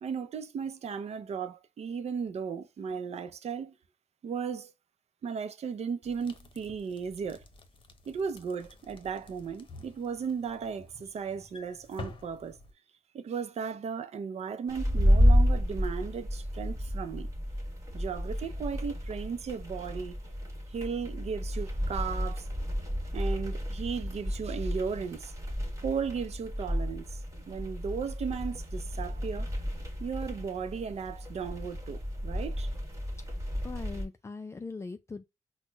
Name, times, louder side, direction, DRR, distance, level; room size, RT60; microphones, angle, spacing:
voice 1, 0.0-3.7 4.2-4.7 5.2-7.4 8.1-12.6 13.1-17.3 17.9-20.2 20.7-22.5 23.1-25.3 25.8-27.2 27.5-29.5 30.0-32.7, right 6 dB, 65° right, 0.5 m, -36 dB
sound 1, 6.0-12.7, left 2 dB, 45° left, 0.8 m, -49 dB
sound 2, 14.7-34.0, equal, 25° right, 1.4 m, -31 dB
voice 2, 33.6-35.2, left 4 dB, 25° left, 0.3 m, -40 dB
4.2 x 2.1 x 2.2 m
cardioid pair, 65°, 12 cm